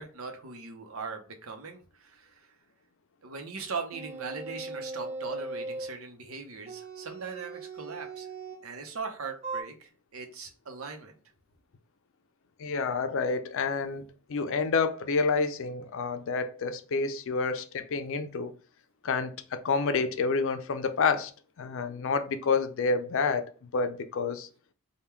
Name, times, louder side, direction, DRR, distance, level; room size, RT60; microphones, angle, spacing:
voice 1, 0.0-2.5 3.2-8.3 8.6-11.2 17.3-17.4, right 4 dB, 75° right, 0.8 m, -40 dB
sound 1, 3.9-6.0 6.7-8.7 9.4-9.6, right 3 dB, 30° right, 0.9 m, -39 dB
voice 2, 12.6-14.0 14.3-18.5 19.0-21.3 21.6-24.5, left 4 dB, 65° left, 0.5 m, -29 dB
3.6 x 2.3 x 4.4 m
head